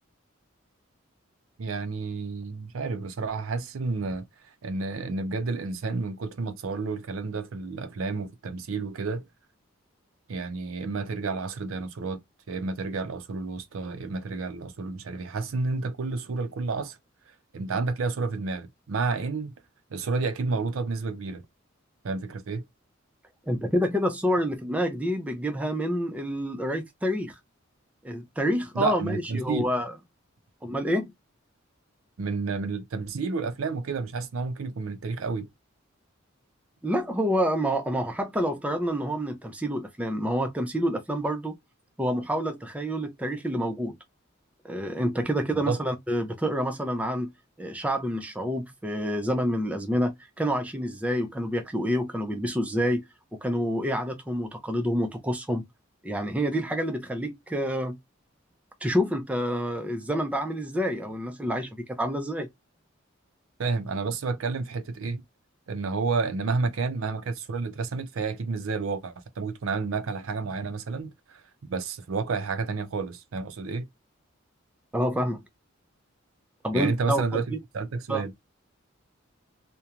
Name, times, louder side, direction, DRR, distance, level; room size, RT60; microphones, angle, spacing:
voice 1, 1.6-4.2 4.6-9.2 10.3-12.2 12.5-17.0 17.5-19.5 19.9-21.4 22.0-22.6 28.7-29.7 32.2-35.5 45.5-45.8 63.6-65.2 65.7-71.4 71.7-73.9 76.7-78.3, right 4 dB, 85° right, 0.5 m, -30 dB
voice 2, 23.5-27.4 28.0-29.9 30.6-31.1 36.8-41.6 42.0-43.9 44.6-47.3 47.6-53.0 53.3-55.6 56.0-58.0 58.8-62.5 74.9-75.4 76.6-77.6 78.1-78.2, equal, 5° right, 0.4 m, -28 dB
2.9 x 2.1 x 2.4 m
head